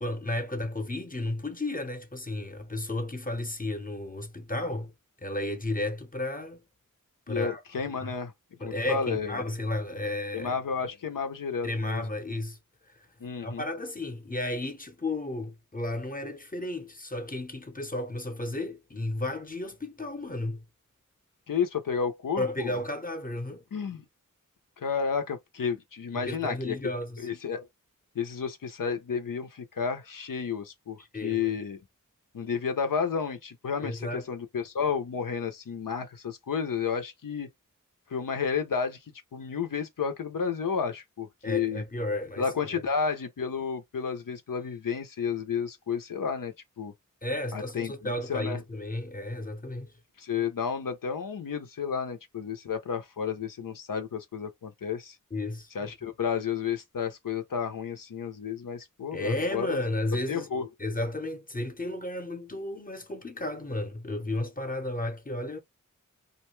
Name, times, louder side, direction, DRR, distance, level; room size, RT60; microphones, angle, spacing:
voice 1, 0.0-4.9 5.2-6.6 7.3-7.6 8.0-8.1 8.6-10.5 11.6-12.6 12.9-13.1 13.4-20.6 22.4-23.6 26.1-27.3 31.0-31.5 33.8-34.2 41.4-42.5 42.7-42.8 47.2-49.9 55.3-55.7 59.1-60.5 60.8-65.6, left 1 dB, 25° left, 0.8 m, -33 dB
voice 2, 7.3-8.3 8.6-9.4 10.3-12.0 13.2-13.7 21.5-22.7 23.7-24.0 24.8-26.8 27.2-27.7 28.2-31.8 32.3-37.5 38.1-39.0 39.3-41.8 42.4-46.9 47.5-48.6 50.2-55.2 55.7-59.8 60.3-60.7, left 6 dB, 75° left, 0.6 m, -31 dB
2.5 x 2.2 x 3.0 m
wide cardioid pair, 45°, 33 cm